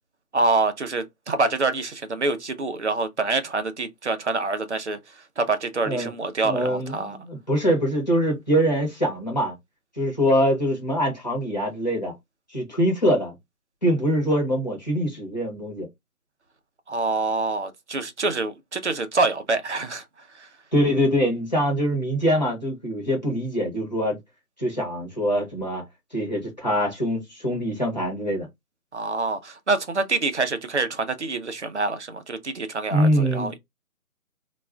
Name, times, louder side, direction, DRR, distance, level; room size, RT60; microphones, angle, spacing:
voice 1, 0.3-5.0 5.4-7.2 16.9-20.0 20.3-20.5 28.9-33.6, right 3 dB, 50° right, 0.5 m, -26 dB
voice 2, 6.4-9.5 10.0-12.1 12.5-13.3 13.8-15.9 20.7-24.2 24.6-25.8 26.1-28.5 32.9-33.5, equal, 30° left, 0.9 m, -23 dB
2.3 x 2.2 x 3.3 m
figure-of-eight pair, 165°, 45 cm